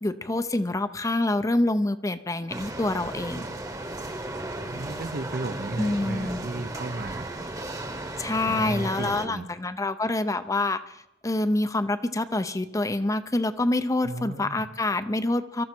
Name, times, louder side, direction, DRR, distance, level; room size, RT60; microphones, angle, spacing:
voice 1, 0.0-3.5 5.8-6.5 8.2-15.6, left 2 dB, 20° left, 11 dB, 0.6 m, -26 dB
sound 1, 2.5-9.3, right 1 dB, 20° right, 1.1 m, -35 dB
voice 2, 4.5-7.3 8.4-9.5 14.0-14.7, right 2 dB, 55° right, 11 dB, 0.7 m, -34 dB
24.0 x 13.5 x 4.5 m, 0.86 s
head